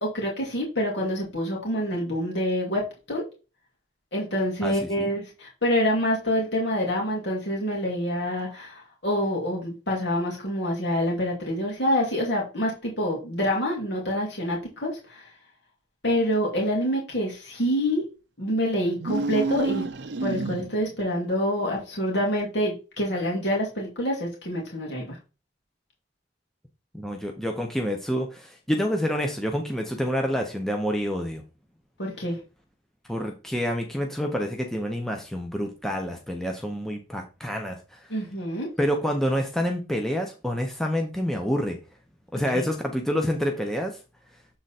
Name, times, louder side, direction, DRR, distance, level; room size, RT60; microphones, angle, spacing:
voice 1, 0.0-3.2 4.1-15.3 16.0-18.0 18.4-19.8 20.2-25.2 32.0-32.4 38.1-38.7, equal, 70° left, -2 dB, 2.5 m, -26 dB
voice 2, 4.6-5.1 26.9-31.4 33.1-38.1 38.8-41.8 42.3-44.0, equal, ahead, 2 dB, 0.9 m, -28 dB
sound 1, 18.9-21.0, right 3 dB, 70° right, 0.7 m, -29 dB
7.6 x 4.0 x 4.2 m, 0.31 s
head